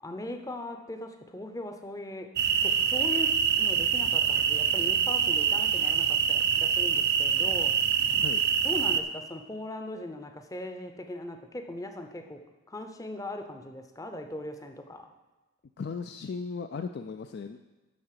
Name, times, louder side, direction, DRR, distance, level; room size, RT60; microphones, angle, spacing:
voice 1, 0.0-2.3 2.6-7.8 8.6-12.4 12.7-15.1, left 1 dB, 15° left, 5 dB, 0.6 m, -39 dB
sound 1, 2.4-9.0, right 7 dB, 45° right, 0.5 m, -25 dB
voice 2, 8.1-8.4 15.8-17.6, left 5 dB, 45° left, 8 dB, 0.3 m, -37 dB
11.5 x 3.9 x 7.5 m, 1.2 s
head